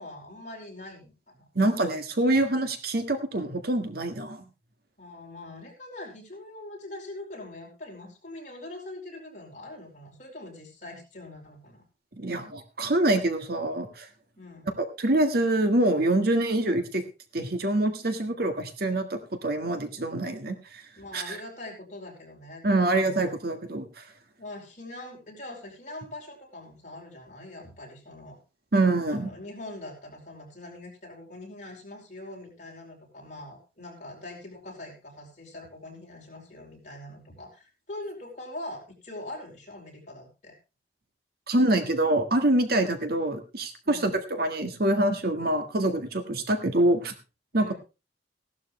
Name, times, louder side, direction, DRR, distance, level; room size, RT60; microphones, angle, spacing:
voice 1, 0.0-1.5 5.0-11.8 14.4-14.7 21.0-23.3 24.4-28.4 29.1-40.5 43.8-44.2 47.5-47.7, left 1 dB, 45° left, 0 dB, 4.7 m, -43 dB
voice 2, 1.5-4.4 12.1-14.1 14.8-17.0 17.3-20.8 21.1-21.4 22.6-24.0 28.7-29.3 41.5-47.1 47.5-47.7, right 1 dB, 60° right, 8 dB, 1.6 m, -25 dB
16.0 x 12.0 x 3.2 m, 0.29 s
head